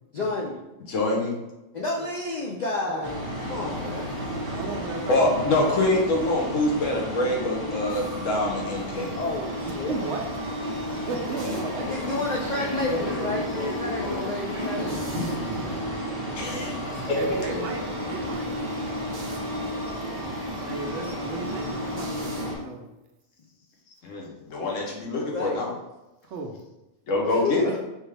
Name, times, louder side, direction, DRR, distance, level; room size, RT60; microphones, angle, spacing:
voice 1, 0.1-0.7 1.7-3.1 3.5-4.2 9.1-10.0 11.8-15.1 18.7-18.8 22.2-22.8 25.2-25.6 27.3-27.5, left 2 dB, 70° left, -2 dB, 0.4 m, -31 dB
voice 2, 0.9-1.3 5.1-9.1 11.4-11.6 12.9-13.3 16.3-17.2 24.0-25.7 27.1-27.7, left 2 dB, 90° left, 0 dB, 1.2 m, -25 dB
voice 3, 2.8-3.3 4.6-5.6 9.9-10.2 11.1-11.9 17.2-18.5 20.6-22.9 26.3-26.5, right 3 dB, 70° right, 4 dB, 0.9 m, -35 dB
sound 1, 3.0-22.6, equal, 35° right, 0.7 m, -32 dB
Subway metro underground, 11.7-18.3, equal, 35° left, 0.8 m, -35 dB
3.6 x 2.9 x 3.2 m, 0.97 s
omnidirectional pair, 1.3 m